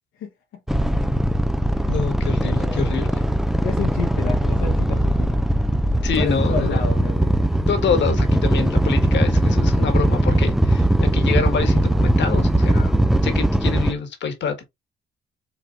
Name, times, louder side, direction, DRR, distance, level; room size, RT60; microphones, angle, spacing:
voice 1, 0.2-0.6 1.8-3.3 3.6-5.4 6.1-7.7, left 6 dB, 85° left, 1.3 m, -32 dB
sound 1, 0.7-13.9, right 1 dB, ahead, 0.4 m, -20 dB
voice 2, 1.9-3.1 6.0-6.8 7.7-10.8 11.1-12.9 13.2-14.6, left 6 dB, 65° left, 1.6 m, -26 dB
5.8 x 3.4 x 2.5 m
cardioid pair, 90°, 20 cm